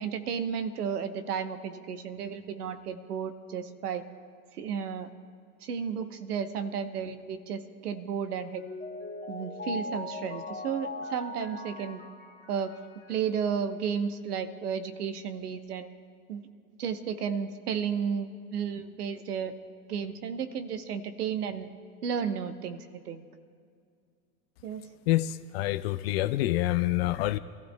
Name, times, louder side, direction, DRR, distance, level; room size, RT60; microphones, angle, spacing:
voice 1, 0.0-4.1 4.5-5.1 5.6-8.6 9.3-12.0 12.5-12.7 13.1-15.9 16.3-16.4 16.8-19.5 19.9-21.7 22.0-23.2 24.6-24.8, right 7 dB, 70° right, 10 dB, 1.1 m, -33 dB
Mallet percussion, 8.3-13.3, left 2 dB, 15° left, 3.2 m, -40 dB
voice 2, 25.1-27.4, left 16 dB, 40° left, 13 dB, 0.4 m, -27 dB
26.0 x 14.5 x 2.3 m, 2.3 s
figure-of-eight pair, 90°, 48 cm